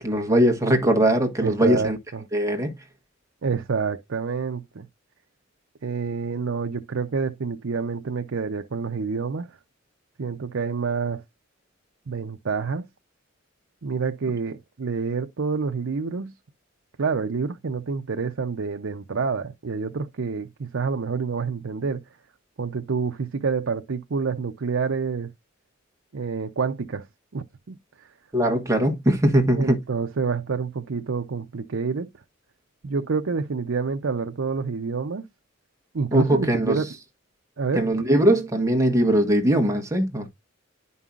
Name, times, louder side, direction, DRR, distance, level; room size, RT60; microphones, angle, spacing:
voice 1, 0.0-2.0 2.3-2.7 28.3-29.8 36.1-36.8 37.7-40.3, right 1 dB, 15° right, 1.3 m, -21 dB
voice 2, 1.4-2.2 3.4-4.9 5.8-9.5 10.2-11.2 12.1-12.9 13.8-16.3 17.0-22.0 22.6-25.3 26.1-27.1 27.3-27.8 29.6-32.1 32.8-35.3 35.9-36.9 37.6-37.9, right 5 dB, 70° right, 0.6 m, -28 dB
9.9 x 5.4 x 2.4 m
head